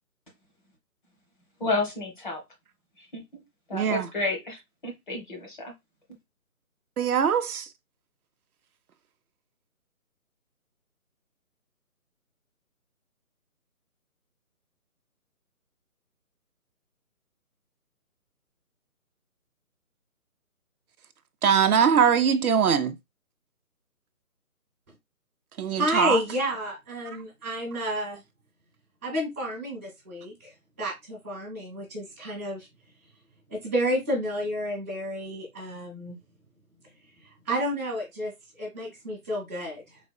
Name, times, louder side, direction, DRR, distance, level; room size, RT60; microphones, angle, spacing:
voice 1, 1.6-2.4 3.0-3.4 3.7-5.7, left 2 dB, 35° left, 1.1 m, -31 dB
voice 2, 3.7-4.1 7.0-7.7 21.4-23.0 25.6-26.2, right 7 dB, 75° right, 0.6 m, -22 dB
voice 3, 25.8-28.2 29.0-32.7 33.5-36.2 37.4-40.0, equal, 10° right, 0.8 m, -30 dB
4.1 x 2.4 x 2.2 m
hypercardioid pair, 165°, 44 cm